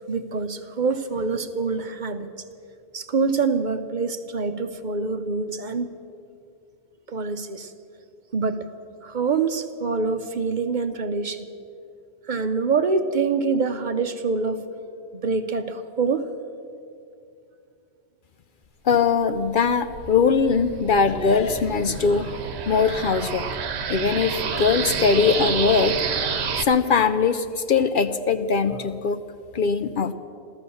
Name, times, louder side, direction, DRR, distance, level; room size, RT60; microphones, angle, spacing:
voice 1, 0.1-2.3 2.9-5.9 7.1-7.7 8.3-8.6 9.0-11.5 12.3-14.6 15.1-16.3, right 4 dB, 50° right, 9 dB, 0.8 m, -25 dB
voice 2, 18.8-22.4 22.6-23.5 23.9-29.2 29.5-30.1, left 5 dB, 60° left, 10 dB, 0.7 m, -21 dB
sound 1, 19.3-26.6, right 6 dB, 75° right, 1.1 m, -29 dB
15.0 x 13.5 x 6.9 m, 2.5 s
omnidirectional pair, 1.1 m